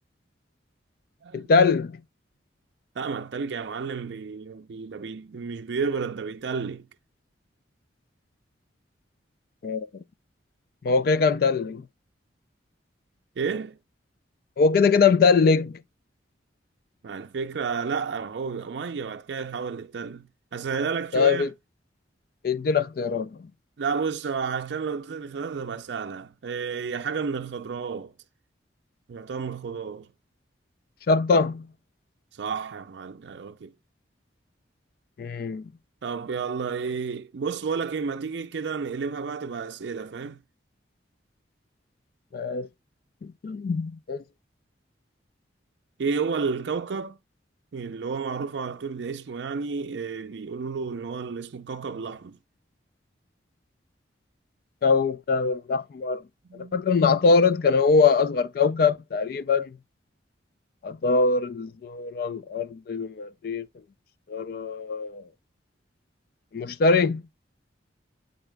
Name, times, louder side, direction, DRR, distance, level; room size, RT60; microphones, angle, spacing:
voice 1, 1.3-2.0 9.6-9.9 10.8-11.8 14.6-15.7 21.1-21.5 22.4-23.3 31.1-31.6 35.2-35.6 42.3-42.7 43.4-44.2 54.8-56.2 56.7-59.7 60.8-63.7 64.3-65.2 66.5-67.2, left 4 dB, 50° left, 0.3 m, -22 dB
voice 2, 3.0-6.9 13.4-13.8 17.0-21.5 23.8-28.1 29.1-30.1 32.3-33.7 36.0-40.4 46.0-47.2 47.7-52.4 56.5-56.8, right 5 dB, 65° right, 0.4 m, -31 dB
8.9 x 3.9 x 3.4 m
head